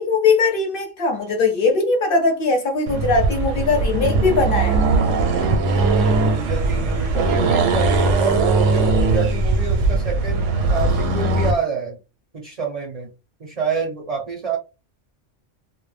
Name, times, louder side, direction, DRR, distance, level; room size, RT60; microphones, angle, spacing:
voice 1, 0.0-4.8, left 4 dB, 55° left, 0.7 m, -20 dB
Accelerating revving vroom, 2.9-11.6, right 3 dB, 80° right, 0.9 m, -19 dB
voice 2, 5.4-12.0 12.3-13.1 13.4-14.6, right 5 dB, 45° right, 0.5 m, -28 dB
2.3 x 2.1 x 3.2 m
omnidirectional pair, 1.3 m